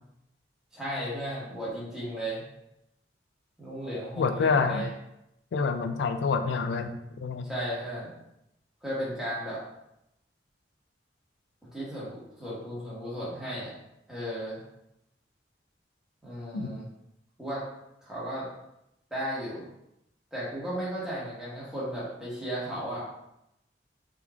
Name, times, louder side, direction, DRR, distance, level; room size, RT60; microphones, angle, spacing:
voice 1, 0.7-2.4 3.6-4.9 7.5-8.1 8.8-9.6 11.7-13.7 14.1-14.6 16.2-16.8 17.4-17.6 18.0-18.5 19.1-19.6 20.3-23.1, equal, 5° right, -9 dB, 1.2 m, -35 dB
voice 2, 4.2-4.9 5.5-7.5 16.5-16.7, left 5 dB, 75° left, 8 dB, 0.3 m, -27 dB
3.5 x 3.1 x 2.3 m, 0.83 s
head